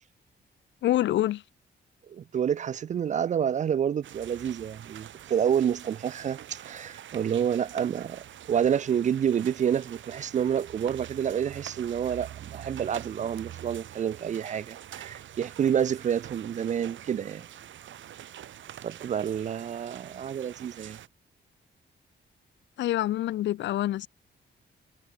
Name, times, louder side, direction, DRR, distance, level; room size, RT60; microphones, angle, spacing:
voice 1, 0.8-1.4 22.8-24.1, left 14 dB, 70° left, 0.4 m, -26 dB
voice 2, 2.1-17.5 18.8-21.0, right 8 dB, 40° right, 0.4 m, -28 dB
sound 1, 4.0-21.1, right 11 dB, 80° right, 1.4 m, -45 dB
wide cardioid pair, 175°, 19 cm